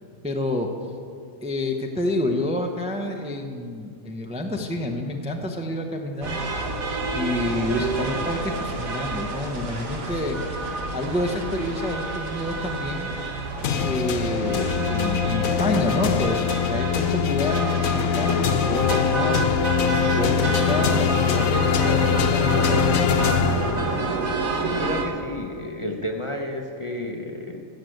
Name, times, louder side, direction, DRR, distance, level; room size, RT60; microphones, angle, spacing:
voice 1, 0.2-0.7 1.4-6.4 7.1-10.6 10.9-13.1 13.8-16.4 16.6-19.5 20.1-23.3, left 1 dB, 5° right, 2 dB, 0.7 m, -28 dB
sound 1, 6.2-25.0, right 3 dB, 85° right, 1.7 m, -29 dB
sound 2, 13.6-24.2, left 7 dB, 85° left, 1.2 m, -22 dB
voice 2, 24.6-27.6, left 1 dB, 25° left, 1 dB, 0.9 m, -31 dB
15.5 x 6.6 x 7.9 m, 2.2 s
omnidirectional pair, 1.4 m